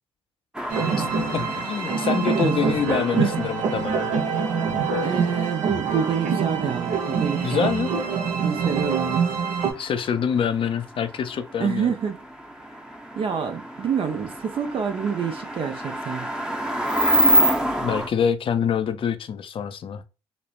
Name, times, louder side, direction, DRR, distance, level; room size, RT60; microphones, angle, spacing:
sound 1, 0.5-18.1, equal, 5° right, 0.7 m, -29 dB
sound 2, 0.7-9.7, right 5 dB, 70° right, 0.8 m, -25 dB
voice 1, 1.3-4.1 7.4-7.9 9.8-11.9 17.8-20.0, left 7 dB, 45° left, 0.5 m, -25 dB
voice 2, 2.3-3.3 5.0-7.7 8.4-9.3 11.6-12.2 13.1-16.3, right 7 dB, 45° right, 0.5 m, -27 dB
3.1 x 2.0 x 2.4 m
hypercardioid pair, 55°, 13 cm